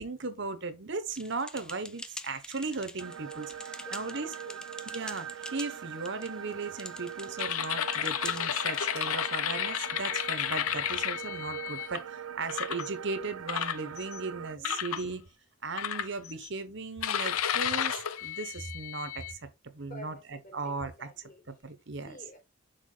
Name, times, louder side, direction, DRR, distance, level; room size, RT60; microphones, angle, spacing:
voice 1, 0.0-4.3 4.9-15.2 15.6-19.4 19.7-21.1 21.6-22.2, right 3 dB, 55° right, 1.0 m, -37 dB
sound 1, 1.1-8.8, left 1 dB, 5° left, 0.4 m, -46 dB
sound 2, 3.0-14.6, right 9 dB, 80° right, 0.5 m, -42 dB
voice 2, 3.8-4.6 14.6-15.3 19.9-21.7 22.0-22.4, equal, 45° left, 4.5 m, -50 dB
sound 3, 7.4-12.0 12.5-12.9 13.5-14.2 14.6-15.0 15.8-16.5 17.0-19.3, left 9 dB, 85° left, 0.6 m, -32 dB
6.7 x 4.7 x 3.9 m
head